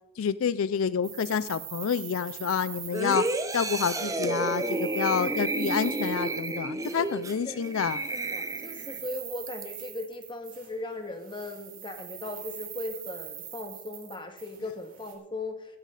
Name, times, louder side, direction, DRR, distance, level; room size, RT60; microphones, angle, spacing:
voice 1, 0.2-3.3 3.5-8.0, left 7 dB, 70° left, 17 dB, 0.4 m, -28 dB
sound 1, 1.0-4.0 4.3-7.1 7.7-10.9 11.2-15.1, right 10 dB, 45° right, 3.9 m, -43 dB
sound 2, 2.9-9.0 9.5-9.6, right 2 dB, 15° right, 0.9 m, -31 dB
voice 2, 8.3-15.8, left 2 dB, 20° left, 5 dB, 1.9 m, -38 dB
15.5 x 14.5 x 4.0 m, 0.84 s
head